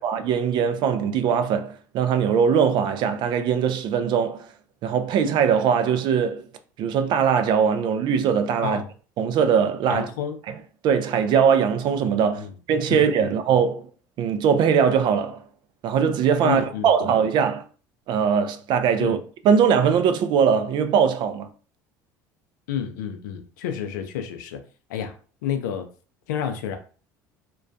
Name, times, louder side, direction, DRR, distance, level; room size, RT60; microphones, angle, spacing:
voice 1, 0.0-4.5 4.8-6.5 6.8-8.8 9.2-10.1 10.5-10.6 10.8-13.9 14.2-15.4 15.8-17.6 18.1-19.2 19.4-21.5, right 7 dB, 50° right, 0.4 m, -21 dB
voice 2, 9.9-10.4 12.4-12.5 12.9-13.3 16.4-17.1 19.0-19.2 22.7-24.6 24.9-25.1 25.4-25.9 26.3-26.8, left 8 dB, 80° left, 0.4 m, -30 dB
2.2 x 2.2 x 2.5 m
hypercardioid pair, 75°, 10 cm